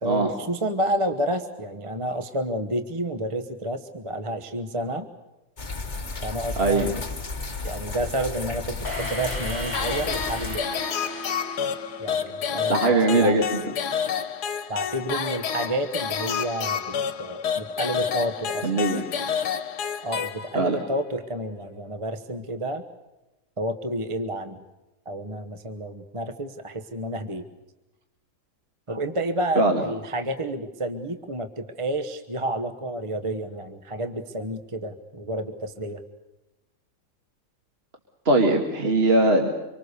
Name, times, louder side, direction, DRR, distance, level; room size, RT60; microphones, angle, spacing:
voice 1, 0.0-5.1 6.2-7.1 7.6-10.7 12.0-13.4 14.7-16.8 17.2-18.7 20.0-22.8 23.6-24.6 25.0-27.4 28.9-36.0, right 1 dB, 20° right, 8 dB, 1.1 m, -30 dB
sound 1, 5.6-10.6, left 3 dB, 30° left, 1.5 m, -33 dB
voice 2, 6.6-6.9 12.7-13.7 18.6-19.1 20.5-20.8 29.6-29.8 38.3-39.5, right 2 dB, 40° right, 2 dB, 2.3 m, -21 dB
sound 2, 8.8-12.7, left 1 dB, 10° left, 4.0 m, -36 dB
sound 3, 9.7-20.9, left 7 dB, 80° left, 1.6 m, -29 dB
26.0 x 24.0 x 6.8 m, 1.0 s
omnidirectional pair, 1.7 m